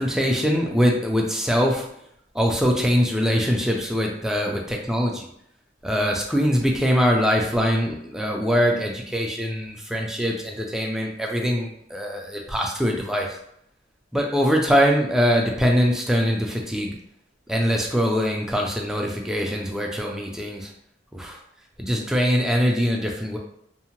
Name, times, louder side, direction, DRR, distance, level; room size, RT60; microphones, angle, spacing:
voice 1, 0.0-1.9 2.3-5.3 5.8-13.4 14.1-16.9 17.5-20.7 21.1-21.4 21.8-23.4, equal, 5° right, 0 dB, 0.4 m, -23 dB
2.7 x 2.1 x 2.9 m, 0.71 s
head